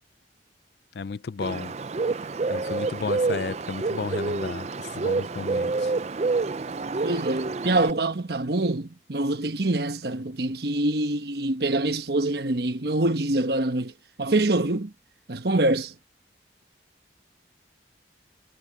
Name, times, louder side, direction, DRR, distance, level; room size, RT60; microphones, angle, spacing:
voice 1, 1.0-1.7 2.5-4.7 5.0-5.7, left 5 dB, 60° left, 0.4 m, -33 dB
Bird, 1.4-7.9, right 3 dB, 35° right, 0.4 m, -28 dB
voice 2, 7.0-13.9 14.2-14.9 15.3-15.9, right 2 dB, 55° right, 1.1 m, -25 dB
head